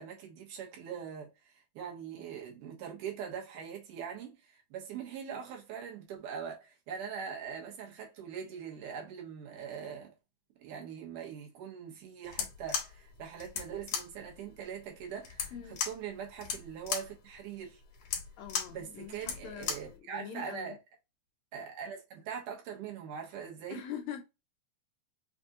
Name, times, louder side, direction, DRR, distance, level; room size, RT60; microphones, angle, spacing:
voice 1, 0.0-10.1 10.6-17.8 18.7-20.8 21.5-23.8, right 7 dB, 80° right, 2.8 m, -42 dB
sound 1, 12.2-20.0, left 7 dB, 65° left, 1.9 m, -38 dB
voice 2, 18.4-20.8 23.7-24.2, left 9 dB, 80° left, 1.6 m, -43 dB
5.8 x 2.6 x 2.4 m
omnidirectional pair, 3.7 m